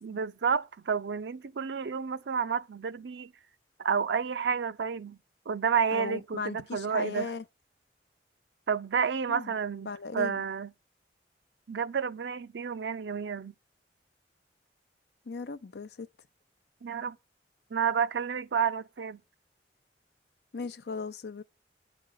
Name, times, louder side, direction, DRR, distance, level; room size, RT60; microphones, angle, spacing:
voice 1, 0.0-3.3 3.8-5.2 5.5-7.3 8.7-9.9 10.1-10.7 11.7-13.5 16.8-17.2 17.7-19.2, right 6 dB, 85° right, 0.5 m, -30 dB
voice 2, 5.9-7.4 9.3-9.5 9.9-10.4 15.3-16.1 20.5-21.4, left 4 dB, 70° left, 0.6 m, -37 dB
9.5 x 5.1 x 6.5 m
head